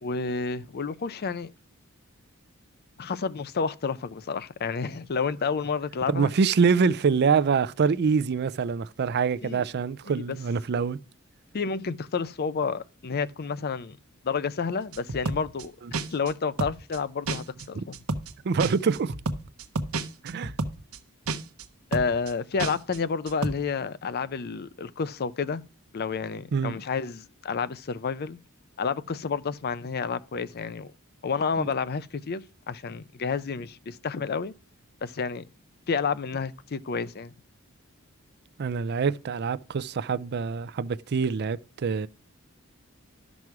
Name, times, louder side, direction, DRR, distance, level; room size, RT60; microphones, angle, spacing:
voice 1, 0.0-1.5 3.0-6.3 9.4-9.6 10.1-10.4 11.5-14.0 14.2-15.7 16.1-18.0 21.9-25.6 25.9-28.4 28.8-30.9 31.2-34.5 35.0-35.5 35.9-37.3, left 5 dB, 50° left, 0.5 m, -30 dB
voice 2, 6.1-11.0 17.8-17.9 18.4-19.1 20.2-20.5 26.5-26.7 38.6-42.1, right 5 dB, 50° right, 0.4 m, -25 dB
sound 1, 14.9-15.6 15.9-16.3 16.6-17.0 17.3-17.6 17.9-18.3 18.6-21.0 21.3-21.6 21.9-22.3 22.6-23.0 23.3-23.5, right 3 dB, 80° right, 0.9 m, -30 dB
12.0 x 6.1 x 4.7 m
head